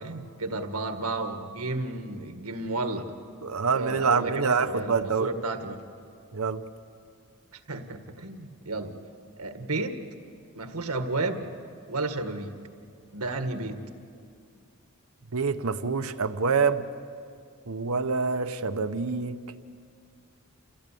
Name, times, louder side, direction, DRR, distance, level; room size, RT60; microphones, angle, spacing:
voice 1, 0.0-3.2 3.7-5.8 7.7-8.9 9.4-10.0 10.6-11.5 11.9-12.5 13.1-13.8, right 2 dB, 90° right, 6 dB, 1.8 m, -32 dB
voice 2, 3.4-5.3 6.3-6.6 15.3-16.8 17.7-19.4, right 5 dB, 70° right, 9 dB, 0.9 m, -26 dB
27.5 x 16.0 x 8.5 m, 2.3 s
head